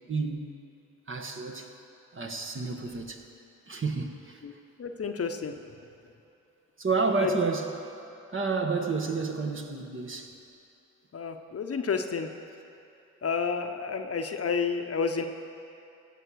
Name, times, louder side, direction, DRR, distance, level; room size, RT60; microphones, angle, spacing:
voice 1, 0.1-0.5 1.1-1.7 2.1-3.2 3.7-4.4 6.8-7.8 8.3-10.3, right 4 dB, 40° right, 3 dB, 1.4 m, -30 dB
voice 2, 4.8-5.5 7.2-7.3 11.1-12.3 13.2-15.3, left 5 dB, 50° left, 6 dB, 0.9 m, -30 dB
16.0 x 5.8 x 6.4 m, 2.7 s
supercardioid pair, 45°, 31 cm